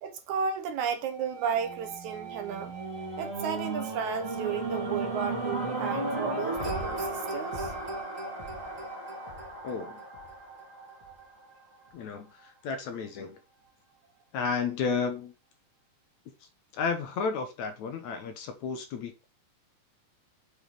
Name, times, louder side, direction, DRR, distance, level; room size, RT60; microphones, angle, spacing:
voice 1, 0.0-2.7 3.2-7.7, right 7 dB, 75° right, 2.1 m, -33 dB
sound 1, 1.1-9.4, right 6 dB, 50° right, 2.6 m, -45 dB
sound 2, 1.5-11.8 12.4-12.5, right 2 dB, 25° right, 2.4 m, -35 dB
voice 2, 9.6-10.0 11.9-13.4 14.3-15.3 16.7-19.3, left 5 dB, 65° left, 2.3 m, -32 dB
7.3 x 4.9 x 4.9 m
omnidirectional pair, 3.8 m